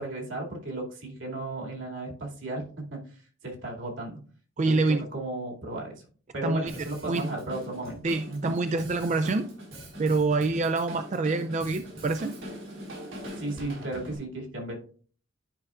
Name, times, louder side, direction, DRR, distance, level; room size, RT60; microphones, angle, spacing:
voice 1, 0.0-3.0 3.4-4.2 4.6-4.8 5.1-6.0 6.3-8.0 8.3-8.5 13.4-14.7, right 2 dB, 75° right, -1 dB, 2.5 m, -34 dB
voice 2, 4.6-5.1 6.4-6.7 7.1-7.3 8.0-9.5 10.0-12.3, right 3 dB, 40° right, 8 dB, 0.4 m, -26 dB
Drum kit, 6.7-14.2, equal, 90° right, 4.2 m, -42 dB
12.0 x 5.4 x 2.5 m, 0.43 s
head